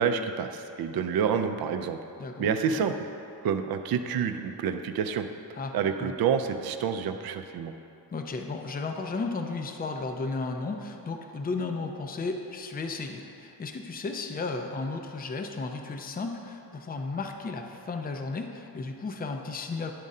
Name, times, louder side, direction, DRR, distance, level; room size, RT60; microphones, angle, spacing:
voice 1, 0.0-2.0 2.4-2.9 3.4-5.3 5.7-7.7, right 7 dB, 65° right, 7 dB, 0.5 m, -28 dB
voice 2, 2.2-2.8 5.6-6.1 8.1-19.9, left 3 dB, 25° left, 4 dB, 0.5 m, -34 dB
10.5 x 3.7 x 5.4 m, 2.8 s
cardioid pair, 120°, 38 cm